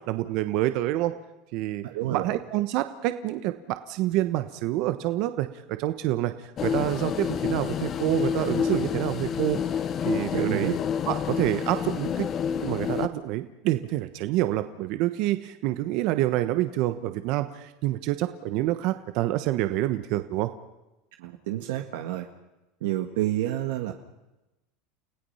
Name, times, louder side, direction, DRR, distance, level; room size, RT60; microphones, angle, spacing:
voice 1, 0.1-1.2 1.5-1.8 2.1-6.3 6.6-9.6 10.0-10.7 11.1-12.3 12.6-20.5, right 15 dB, 55° right, 10 dB, 1.2 m, -27 dB
voice 2, 1.8-2.3 10.3-10.7 21.2-22.3 22.8-23.9, right 14 dB, 80° right, 4 dB, 1.7 m, -29 dB
sound 1, 6.6-13.1, left 7 dB, 30° left, 1.0 m, -28 dB
30.0 x 16.5 x 5.7 m, 0.98 s
supercardioid pair, 140°, 0 cm